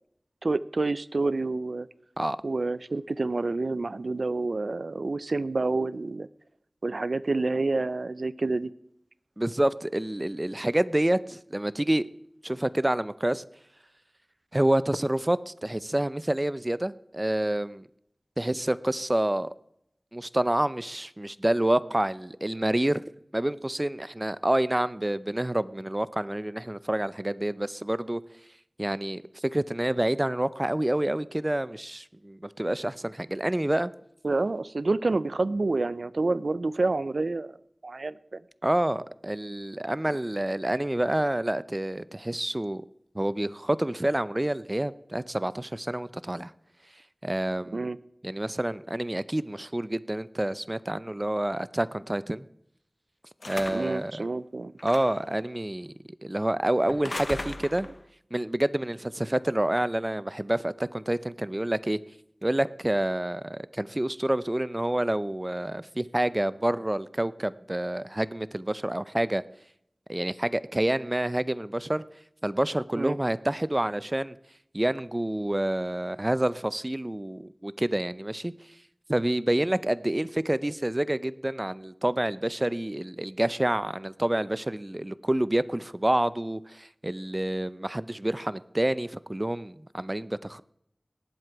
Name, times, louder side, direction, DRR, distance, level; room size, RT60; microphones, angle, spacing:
voice 1, 0.4-1.9 2.4-6.3 6.8-8.7 34.2-37.6 37.8-38.4 40.1-40.2 47.7-48.0 53.7-54.7 73.0-73.2, right 3 dB, 80° right, 0.5 m, -28 dB
voice 2, 9.4-12.1 12.4-13.4 14.5-17.9 18.4-19.5 20.1-23.0 23.3-28.2 28.8-33.9 38.6-42.8 43.1-46.5 47.2-47.9 48.2-52.5 53.5-54.3 54.8-55.9 56.2-57.9 58.3-62.0 62.4-69.4 70.1-72.0 72.4-74.4 74.7-78.5 79.1-90.6, right 1 dB, 25° right, 0.5 m, -28 dB
sound 1, 53.4-54.0 54.8-55.3 56.9-58.0, left 2 dB, 60° left, 0.7 m, -37 dB
18.5 x 7.9 x 4.6 m
wide cardioid pair, 50°, 0 cm